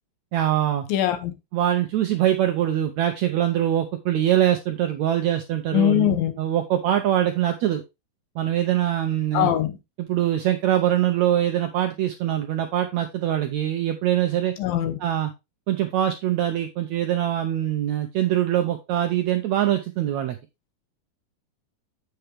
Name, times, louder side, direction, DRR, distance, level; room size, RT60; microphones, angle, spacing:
voice 1, 0.3-0.8 1.5-7.8 8.4-9.5 10.0-14.5 15.0-15.3 15.7-20.4, right 12 dB, 75° right, 1.6 m, -23 dB
voice 2, 0.9-1.3 5.7-6.3 9.3-9.8 14.6-15.0, left 12 dB, 80° left, 2.8 m, -21 dB
8.0 x 7.0 x 3.3 m
omnidirectional pair, 4.1 m